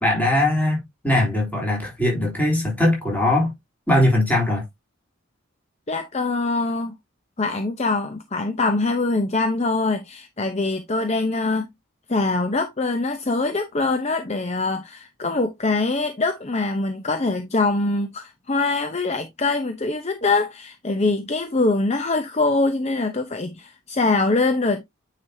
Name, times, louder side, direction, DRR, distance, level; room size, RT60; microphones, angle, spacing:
voice 1, 0.0-3.5 3.9-4.6, left 1 dB, 10° left, 3.4 m, -20 dB
voice 2, 5.9-6.9 7.4-11.7 12.1-24.8, left 3 dB, 30° left, 0.7 m, -23 dB
9.3 x 5.0 x 2.7 m
head